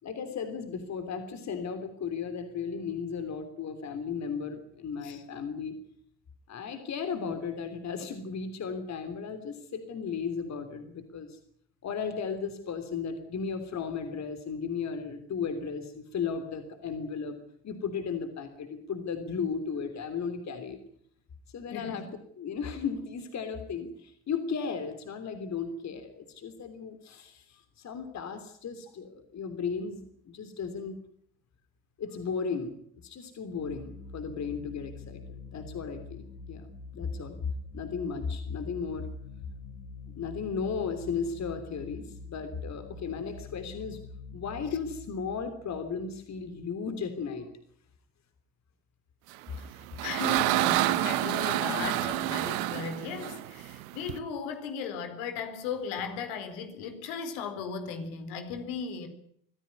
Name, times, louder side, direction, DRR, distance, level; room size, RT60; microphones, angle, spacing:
voice 1, 0.0-5.7 6.5-11.4 11.8-17.4 17.6-20.8 21.5-22.1 22.4-31.0 32.0-32.7 33.0-36.7 36.9-37.4 37.7-39.1 40.1-44.0 44.3-47.5 51.7-51.9, left 6 dB, 35° left, 9 dB, 3.3 m, -35 dB
voice 2, 21.7-22.1 49.6-59.1, left 5 dB, 65° left, 8 dB, 4.3 m, -36 dB
sound 1, 33.6-46.9, left 4 dB, 90° left, 4.3 m, -46 dB
passing the nail through a metal grid, 49.5-54.2, right 17 dB, 65° right, 1.4 m, -28 dB
24.5 x 15.5 x 9.7 m, 0.67 s
figure-of-eight pair, 65°, 45 cm